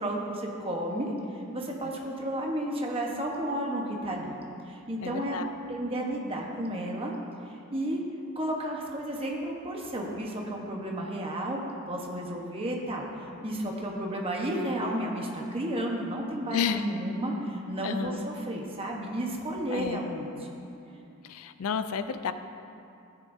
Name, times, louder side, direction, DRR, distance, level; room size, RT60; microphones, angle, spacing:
voice 1, 0.0-4.4 4.6-5.4 5.6-7.1 7.5-8.0 8.3-20.5, right 1 dB, 25° right, -1 dB, 1.1 m, -32 dB
voice 2, 5.0-5.5 16.5-16.8 17.8-18.2 19.7-20.0 21.2-22.3, left 6 dB, 75° left, 11 dB, 0.4 m, -31 dB
14.0 x 10.0 x 2.7 m, 2.6 s
head